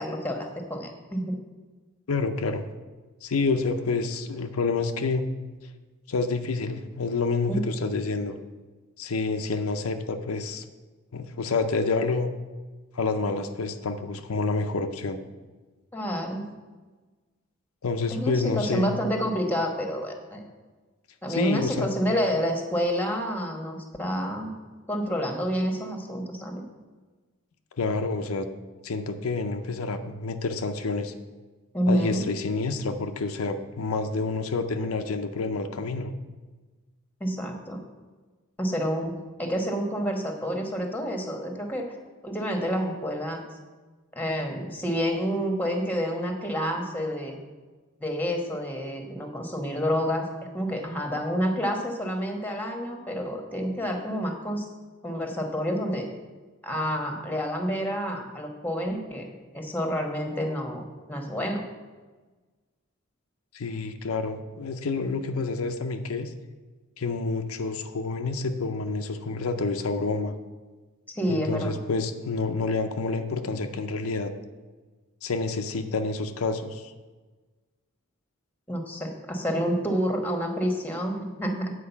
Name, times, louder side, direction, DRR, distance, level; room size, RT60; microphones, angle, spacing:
voice 1, 0.0-1.3 7.5-7.6 15.9-16.5 18.1-20.4 21.2-24.5 24.9-26.6 31.7-32.3 37.2-37.8 38.6-39.1 39.4-41.9 42.2-43.4 44.1-47.4 48.0-50.3 50.5-54.7 55.0-56.1 56.6-59.3 59.5-61.6 71.1-71.7 78.7-81.7, equal, 10° left, 3 dB, 1.1 m, -28 dB
voice 2, 2.1-2.6 3.2-5.3 6.1-8.4 9.0-10.6 11.1-12.3 12.9-15.2 17.8-18.9 21.3-21.9 27.8-28.5 28.8-31.1 31.9-36.1 63.5-66.3 67.0-70.3 71.3-74.3 75.2-76.9, left 3 dB, 85° left, 7 dB, 0.6 m, -28 dB
8.5 x 4.8 x 7.0 m, 1.3 s
head